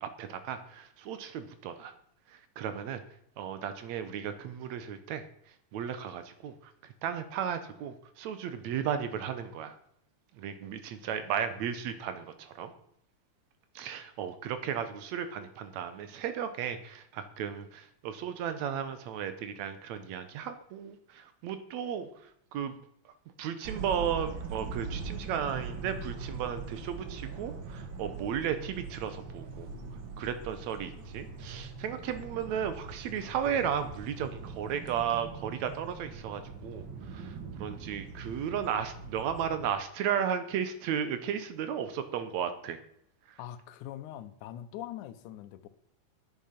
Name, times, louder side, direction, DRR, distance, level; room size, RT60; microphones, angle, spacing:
voice 1, 0.0-1.9 2.3-3.0 3.4-5.2 5.7-6.7 7.0-9.8 10.4-12.7 13.8-22.1 22.5-22.7 23.4-29.7 30.2-42.8 43.3-43.4, right 8 dB, 70° right, 10 dB, 2.1 m, -34 dB
sound 1, 23.6-39.7, right 4 dB, 50° right, 1.8 m, -42 dB
voice 2, 43.4-45.7, left 12 dB, 85° left, 12 dB, 2.2 m, -42 dB
10.0 x 8.6 x 5.8 m, 0.69 s
omnidirectional pair, 3.4 m